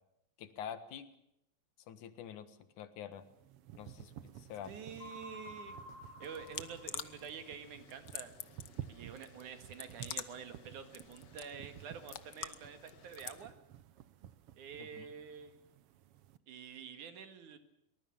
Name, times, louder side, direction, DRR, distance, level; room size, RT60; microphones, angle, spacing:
voice 1, 0.4-1.1 1.9-3.2 3.8-4.7 14.8-15.1, left 9 dB, 85° left, 12 dB, 2.9 m, -46 dB
sound 1, 3.1-16.4, right 11 dB, 65° right, 1.6 m, -53 dB
voice 2, 4.6-5.8 6.2-8.3 8.9-13.5 14.6-15.6 16.5-17.6, right 7 dB, 85° right, 9 dB, 3.4 m, -48 dB
sound 2, 5.0-7.6, left 1 dB, 45° left, 6.0 m, -51 dB
sound 3, 6.2-13.4, left 9 dB, 65° left, 1.1 m, -48 dB
23.5 x 20.0 x 7.2 m, 0.78 s
omnidirectional pair, 3.4 m